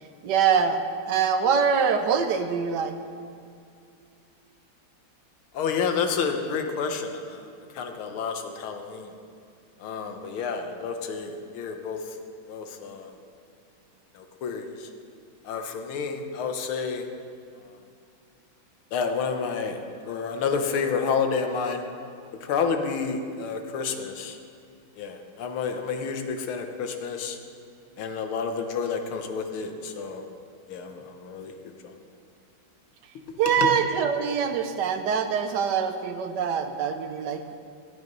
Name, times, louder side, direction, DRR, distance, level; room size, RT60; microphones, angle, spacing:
voice 1, 0.2-3.0 33.4-37.5, right 6 dB, 65° right, 8 dB, 1.2 m, -24 dB
voice 2, 5.5-7.4 7.7-9.1 9.8-12.0 12.5-13.1 14.2-14.9 15.4-17.1 18.9-19.8 20.0-21.8 22.4-24.4 25.0-27.4 28.0-30.2 30.7-31.9 33.3-33.4 33.6-33.7, left 5 dB, 80° left, 5 dB, 1.8 m, -30 dB
13.5 x 9.7 x 5.3 m, 2.4 s
omnidirectional pair, 2.3 m